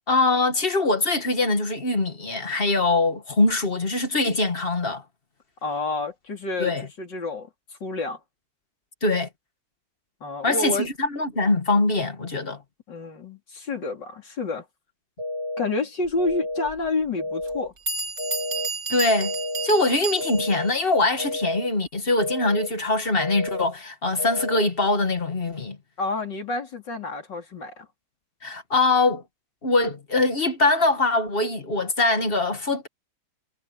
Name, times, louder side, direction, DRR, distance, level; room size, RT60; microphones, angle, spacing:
voice 1, 0.1-5.0 6.6-6.9 9.0-9.3 10.4-12.6 18.9-19.3 19.6-25.8 28.4-29.2 29.6-32.9, left 2 dB, 35° left, 1.9 m, -23 dB
voice 2, 5.6-7.5 7.8-8.2 10.2-10.9 12.9-14.6 15.6-17.7 26.0-27.9, left 2 dB, 85° left, 4.2 m, -29 dB
sound 1, 15.2-15.7 16.2-16.7 17.2-17.7 18.2-18.7 19.2-19.7 20.2-20.7 21.2-21.7 22.2-22.7 23.2-23.7 24.2-24.7, left 1 dB, 70° right, 4.0 m, -31 dB
Bell, 16.7-16.8 17.5-17.6 17.9-20.7, right 4 dB, 50° right, 5.2 m, -31 dB
omnidirectional pair, 1.9 m